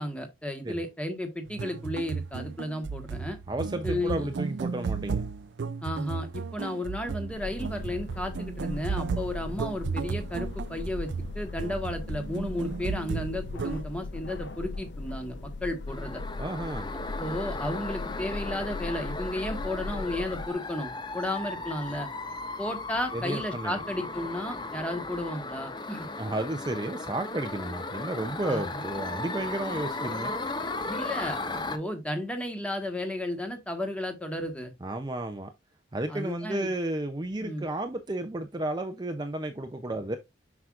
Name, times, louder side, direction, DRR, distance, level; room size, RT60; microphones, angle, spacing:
voice 1, 0.0-3.4 3.8-4.3 5.8-11.1 11.3-16.2 17.2-22.1 22.6-26.1 28.4-28.6 30.9-31.4 31.7-34.7 36.1-36.7 37.4-37.6, left 1 dB, 5° left, 1.3 m, -33 dB
sound 1, 1.5-13.8, right 5 dB, 75° right, 0.4 m, -35 dB
voice 2, 3.5-5.2 16.4-16.9 23.1-23.8 26.2-30.4 34.8-35.5 35.9-40.2, right 1 dB, 25° right, 0.6 m, -32 dB
sound 2, 7.3-20.5, left 2 dB, 70° left, 0.7 m, -38 dB
sound 3, 15.9-31.8, left 3 dB, 25° left, 0.7 m, -36 dB
7.8 x 6.0 x 2.4 m
head